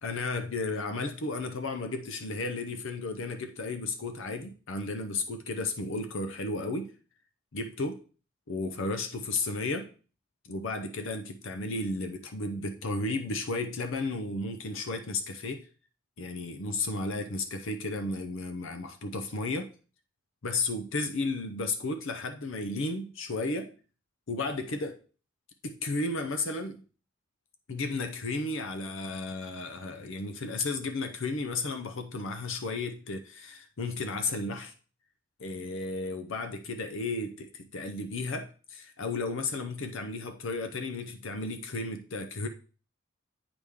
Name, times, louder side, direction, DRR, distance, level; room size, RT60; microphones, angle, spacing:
voice 1, 0.0-6.9 7.5-8.0 8.5-9.9 10.4-15.7 16.2-19.7 20.4-23.7 24.3-25.0 25.6-26.8 27.7-34.7 35.4-42.5, left 3 dB, 65° left, 0.7 m, -33 dB
8.4 x 4.9 x 3.6 m
head